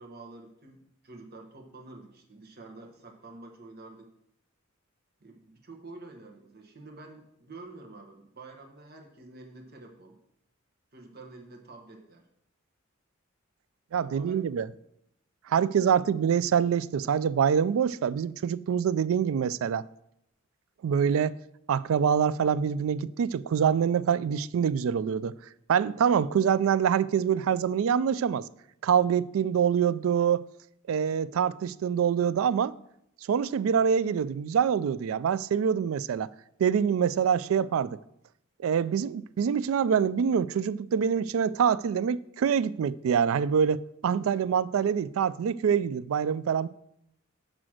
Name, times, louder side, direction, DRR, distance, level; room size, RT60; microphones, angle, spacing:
voice 1, 0.0-4.1 5.2-10.2 10.9-12.3 14.0-14.5 15.8-16.1, right 3 dB, 50° right, 1.2 m, -48 dB
voice 2, 13.9-14.7 15.5-19.8 20.8-21.4 21.7-25.3 25.7-28.5 28.8-30.4 30.9-32.7 33.3-36.3 36.6-38.0 38.6-46.7, right 7 dB, 75° right, 0.3 m, -25 dB
7.5 x 5.1 x 6.3 m
head